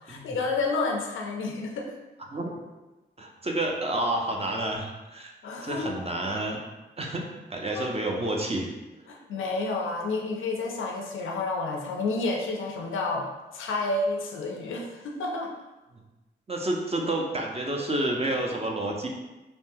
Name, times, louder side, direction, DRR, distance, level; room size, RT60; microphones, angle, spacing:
voice 1, 0.0-2.0 5.4-6.0 7.7-7.9 9.1-15.5, left 3 dB, 85° left, 0 dB, 0.5 m, -30 dB
voice 2, 2.3-2.6 3.2-5.3 5.6-6.6 7.0-8.7 15.9-16.0 16.5-19.1, right 1 dB, 30° right, 1 dB, 0.6 m, -29 dB
3.5 x 2.3 x 2.6 m, 1.1 s
cardioid pair, 45°, 20 cm